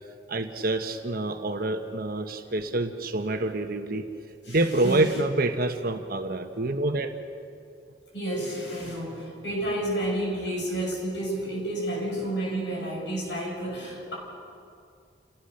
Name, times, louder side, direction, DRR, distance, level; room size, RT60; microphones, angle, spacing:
voice 1, 0.3-4.1 4.5-7.1, right 2 dB, 55° right, 6 dB, 1.2 m, -27 dB
voice 2, 4.4-5.0 8.1-14.1, right 1 dB, 80° left, -1 dB, 6.9 m, -31 dB
29.0 x 17.5 x 6.5 m, 2.4 s
head